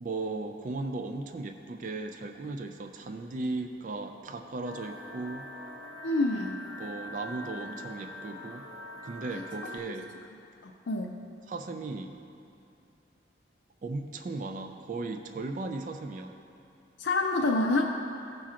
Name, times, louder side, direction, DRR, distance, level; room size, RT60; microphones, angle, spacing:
voice 1, 0.0-5.5 6.8-8.6 9.0-10.1 11.5-12.1 13.8-16.3, right 3 dB, 45° right, 6 dB, 0.3 m, -36 dB
sound 1, 4.6-9.8, left 1 dB, 60° left, 1.0 m, -43 dB
voice 2, 6.0-6.6 10.6-11.1 17.0-17.8, left 2 dB, 80° left, 1 dB, 0.5 m, -27 dB
15.5 x 5.7 x 2.5 m, 2.7 s
head